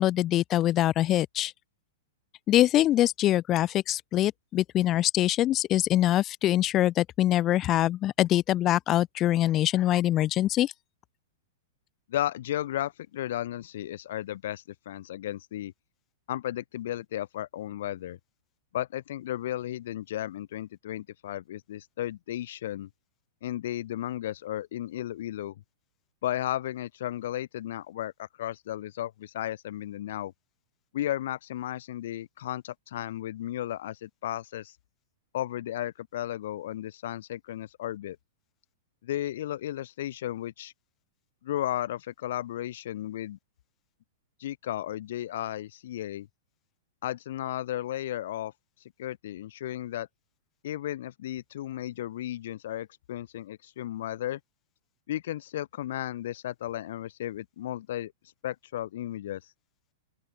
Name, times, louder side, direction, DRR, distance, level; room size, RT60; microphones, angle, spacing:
voice 1, 0.0-1.5 2.5-10.7, left 13 dB, 30° left, 0.3 m, -24 dB
voice 2, 12.1-15.7 16.3-18.2 18.7-22.9 23.4-25.5 26.2-30.3 30.9-34.7 35.3-38.2 39.0-40.7 41.4-43.4 44.4-46.3 47.0-48.5 49.0-50.1 50.6-54.4 55.1-58.1 58.4-59.4, left 13 dB, 65° left, 0.7 m, -34 dB
open air
hypercardioid pair, 135°, 0 cm